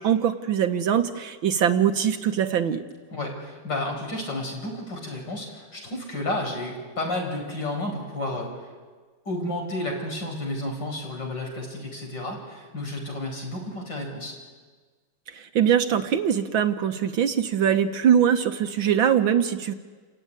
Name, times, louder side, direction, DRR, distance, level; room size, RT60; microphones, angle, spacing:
voice 1, 0.0-2.8 15.3-19.7, right 8 dB, 65° right, 8 dB, 1.7 m, -22 dB
voice 2, 3.1-8.6 9.3-14.4, left 1 dB, 50° left, 1 dB, 5.6 m, -31 dB
29.0 x 15.0 x 9.6 m, 1.5 s
omnidirectional pair, 2.4 m